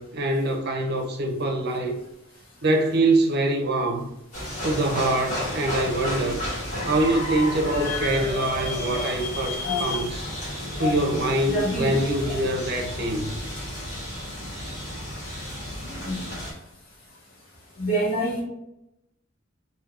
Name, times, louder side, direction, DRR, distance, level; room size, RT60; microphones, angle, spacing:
voice 1, 0.0-2.0 2.6-4.1 4.6-6.4 6.9-10.2 10.8-13.3, right 2 dB, 50° right, 0.5 m, -24 dB
sound 1, 4.3-16.5, left 1 dB, 40° left, 1.3 m, -33 dB
voice 2, 7.9-10.1 10.6-11.2 11.4-12.4 16.0-16.2 17.8-18.4, equal, 90° left, 1.3 m, -29 dB
3.3 x 2.6 x 2.5 m
head